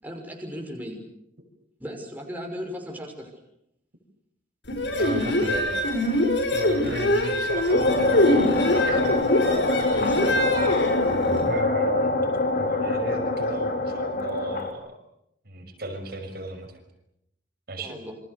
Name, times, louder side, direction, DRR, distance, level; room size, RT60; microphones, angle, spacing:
voice 1, 0.0-1.0 1.8-3.3 10.0-10.4 17.8-18.2, equal, 10° right, 1 dB, 5.9 m, -36 dB
sound 1, 4.7-11.5, left 1 dB, 70° left, 6.5 m, -24 dB
voice 2, 5.0-5.7 6.5-9.2 11.5-12.2 12.6-15.0 15.4-16.8 17.7-18.0, right 1 dB, 55° right, 4 dB, 6.0 m, -35 dB
sound 2, 7.7-14.7, left 2 dB, 50° left, 4.0 m, -25 dB
29.0 x 26.0 x 6.9 m, 0.79 s
head